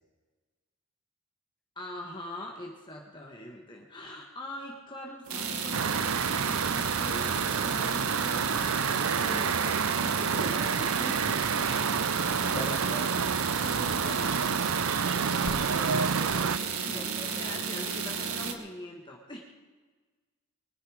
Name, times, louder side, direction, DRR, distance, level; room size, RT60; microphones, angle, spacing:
voice 1, 1.7-12.0 12.4-14.4 16.8-19.4, left 1 dB, 20° left, 0 dB, 1.6 m, -42 dB
sound 1, 5.3-18.5, right 6 dB, 90° right, 1.7 m, -33 dB
sound 2, 5.7-16.6, right 6 dB, 75° right, 0.6 m, -29 dB
sound 3, 9.2-16.6, left 1 dB, 80° left, 1.5 m, -52 dB
voice 2, 15.3-17.6, left 1 dB, 5° left, 0 dB, 2.2 m, -43 dB
23.0 x 11.0 x 5.0 m, 1.3 s
head